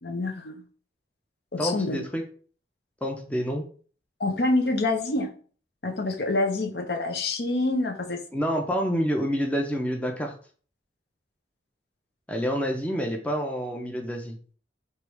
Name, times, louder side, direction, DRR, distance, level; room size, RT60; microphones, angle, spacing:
voice 1, 0.0-0.6 1.5-2.0 4.2-5.3 5.8-8.2, left 2 dB, 60° left, 5 dB, 0.7 m, -26 dB
voice 2, 1.6-2.2 3.0-3.7 8.3-10.3 12.3-14.4, equal, 5° left, 2 dB, 0.5 m, -28 dB
3.2 x 3.0 x 4.7 m, 0.42 s
head